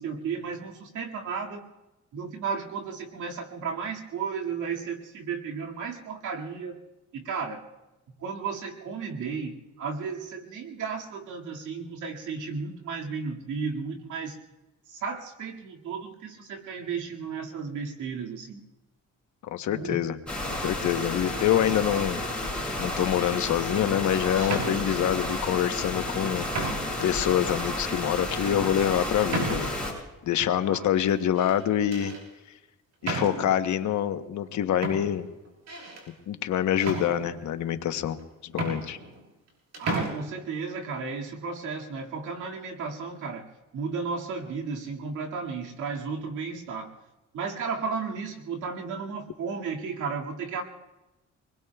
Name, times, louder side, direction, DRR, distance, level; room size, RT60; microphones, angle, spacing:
voice 1, 0.0-1.6 2.1-6.8 7.1-7.6 8.2-14.4 14.9-18.6 19.7-19.9 30.7-30.9 39.8-46.9 47.3-50.6, right 5 dB, 80° right, 0 dB, 2.2 m, -34 dB
voice 2, 19.4-20.2 20.6-22.2 22.8-26.5 27.0-29.7 30.2-32.1 33.0-35.3 36.3-39.0, left 10 dB, 70° left, 9 dB, 1.0 m, -26 dB
sound 1, 20.3-29.9, left 1 dB, 5° left, 6.8 m, -32 dB
sound 2, 21.7-22.1 22.9-23.5 24.4-25.3 26.0-26.1 26.5-27.1 27.6-27.7 28.3-28.5 29.3-30.0 31.1-31.6 31.9-32.2 33.0-33.7 34.4-34.5 34.8-36.1 36.8-37.6 38.2-38.3 38.5-39.5 39.7-40.1, right 2 dB, 60° right, 6.3 m, -34 dB
25.5 x 21.0 x 2.3 m, 1.0 s
cardioid pair, 90°, 30 cm